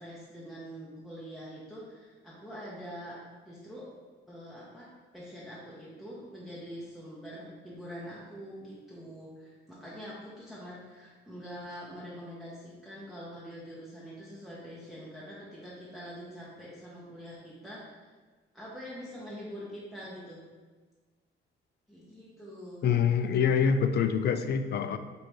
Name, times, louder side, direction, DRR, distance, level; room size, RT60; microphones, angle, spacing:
voice 1, 0.0-3.9 4.3-17.9 18.5-20.4 21.9-22.9, equal, ahead, -8 dB, 1.0 m, -44 dB
voice 2, 22.8-25.0, left 7 dB, 55° left, 10 dB, 0.4 m, -25 dB
5.2 x 3.1 x 3.1 m, 1.4 s
cardioid pair, 90°, 20 cm